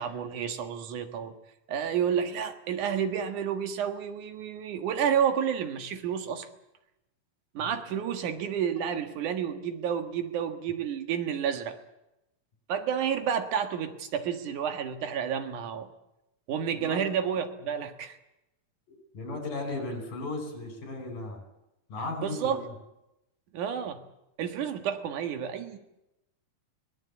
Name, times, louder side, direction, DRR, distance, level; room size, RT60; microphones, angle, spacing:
voice 1, 0.0-1.3 1.7-6.5 7.5-11.8 12.7-15.9 16.5-18.2 22.2-22.6 23.5-24.0 24.4-25.8, right 8 dB, 70° right, 7 dB, 3.0 m, -30 dB
voice 2, 16.7-17.1 18.9-21.4 21.9-22.7, left 2 dB, 80° left, 6 dB, 6.6 m, -36 dB
24.0 x 18.5 x 8.4 m, 0.90 s
omnidirectional pair, 3.8 m